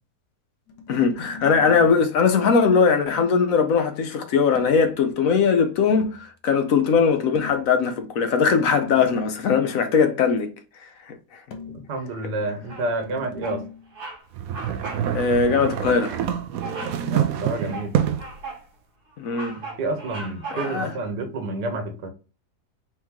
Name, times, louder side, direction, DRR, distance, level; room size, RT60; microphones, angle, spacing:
sound 1, 0.7-2.1 4.6-6.3 7.3-9.4 11.5-13.9 15.9-17.3, left 4 dB, 80° left, 1.4 m, -40 dB
voice 1, 0.9-10.5 11.1-11.2 15.1-16.2 19.2-19.6 20.5-20.9, left 5 dB, 65° left, 1.0 m, -20 dB
voice 2, 11.9-13.6 17.1-18.0 19.6-22.1, right 2 dB, 90° right, 1.7 m, -29 dB
Bird vocalization bird call bird song, 12.7-13.1 13.4-13.6 13.9-14.2 14.5-15.1 15.4-15.6 16.6-17.0 17.5-18.7 19.1-21.0, right 3 dB, 40° right, 1.2 m, -37 dB
sound 2, 14.3-18.4, right 9 dB, 70° right, 1.0 m, -26 dB
4.5 x 3.0 x 3.6 m
omnidirectional pair, 1.7 m